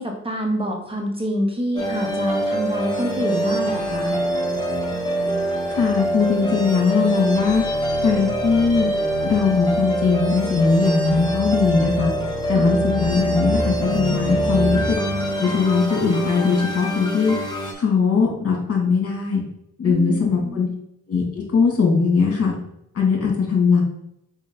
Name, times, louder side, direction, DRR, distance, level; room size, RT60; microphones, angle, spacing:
voice 1, 0.0-4.2 12.5-12.7 19.8-20.7, equal, 20° right, 1 dB, 1.4 m, -26 dB
sound 1, 1.8-17.7, right 1 dB, 15° left, 1.7 m, -24 dB
voice 2, 5.7-7.6 8.0-8.9 9.2-12.1 12.5-15.0 15.4-17.3 17.8-19.4 19.8-20.7 21.1-21.2 21.5-22.5 22.9-23.8, left 5 dB, 50° left, 0 dB, 2.4 m, -20 dB
5.3 x 5.0 x 3.9 m, 0.77 s
cardioid pair, 90°, 30 cm